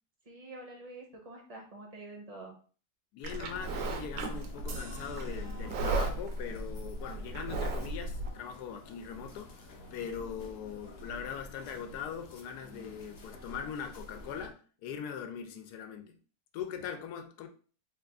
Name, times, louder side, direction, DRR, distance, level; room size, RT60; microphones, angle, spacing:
voice 1, 0.3-2.6, right 2 dB, 40° right, 0.5 m, -47 dB
voice 2, 3.1-9.6 9.9-16.2 16.5-17.5, left 7 dB, 85° left, 1.1 m, -41 dB
Livestock farm animals working animals, 3.2-8.3, right 2 dB, 75° right, 1.1 m, -35 dB
sound 1, 3.3-14.5, left 2 dB, 55° left, 0.7 m, -50 dB
sound 2, 4.7-6.3, right 5 dB, 90° right, 1.3 m, -51 dB
3.2 x 2.4 x 3.4 m
omnidirectional pair, 1.6 m